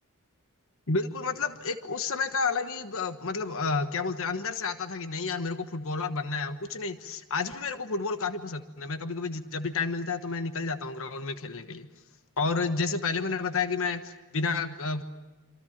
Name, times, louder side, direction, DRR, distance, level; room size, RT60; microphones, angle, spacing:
voice 1, 0.9-11.9 12.4-15.0, left 4 dB, 65° left, 9 dB, 1.3 m, -30 dB
27.5 x 26.5 x 7.4 m, 1.1 s
head